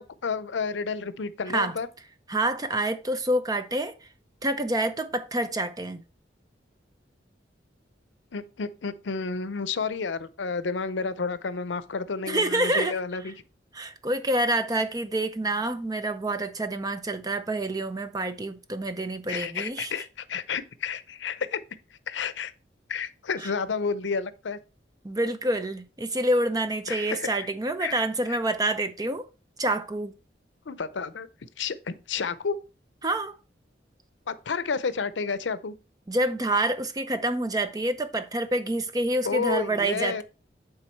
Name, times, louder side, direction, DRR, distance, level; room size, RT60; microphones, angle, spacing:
voice 1, 0.0-1.9 8.3-13.3 19.3-21.6 22.1-22.5 22.9-24.6 26.9-27.3 27.8-28.0 28.3-28.4 30.7-31.3 31.6-32.6 34.3-35.7 39.2-40.2, left 5 dB, 85° left, 0.6 m, -31 dB
voice 2, 2.3-3.9 4.4-6.0 12.2-12.9 13.7-19.9 23.4-23.5 25.0-29.3 29.6-30.1 33.0-33.4 36.1-40.2, right 1 dB, 20° right, 0.6 m, -27 dB
9.0 x 3.8 x 4.4 m
head